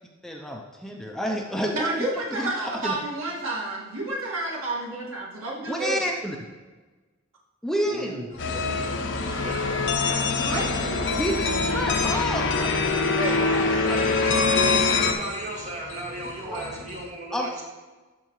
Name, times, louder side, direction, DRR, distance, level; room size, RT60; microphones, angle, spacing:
voice 1, 0.2-1.9 2.4-3.0 5.7-6.4 7.6-8.3 11.2-14.0 16.5-16.6 17.3-17.5, equal, ahead, 0 dB, 0.6 m, -30 dB
voice 2, 1.7-6.1 10.5-10.6 13.2-13.6, right 2 dB, 75° right, -3 dB, 1.9 m, -30 dB
voice 3, 7.8-9.0 9.3-11.2 13.3-17.6, right 1 dB, 35° right, -2 dB, 1.7 m, -37 dB
sound 1, 8.3-17.1, left 2 dB, 80° left, 1.9 m, -43 dB
sound 2, 8.4-15.1, left 4 dB, 60° left, 0.8 m, -24 dB
12.0 x 4.9 x 3.1 m, 1.3 s
head